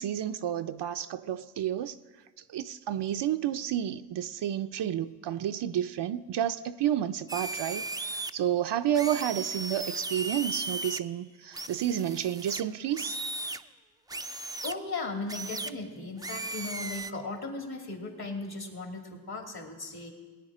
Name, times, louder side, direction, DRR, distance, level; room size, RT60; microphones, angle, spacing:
voice 1, 0.0-2.0 2.5-7.8 8.3-13.2, right 10 dB, 65° right, 9 dB, 0.6 m, -30 dB
sound 1, 7.3-8.3 8.9-11.0 11.5-13.6 14.1-14.7 15.3-15.7 16.2-17.1, right 2 dB, 10° right, 0.4 m, -36 dB
voice 2, 14.6-20.1, left 3 dB, 50° left, 2 dB, 2.6 m, -37 dB
18.0 x 9.7 x 4.9 m, 1.4 s
cardioid pair, 55°, 46 cm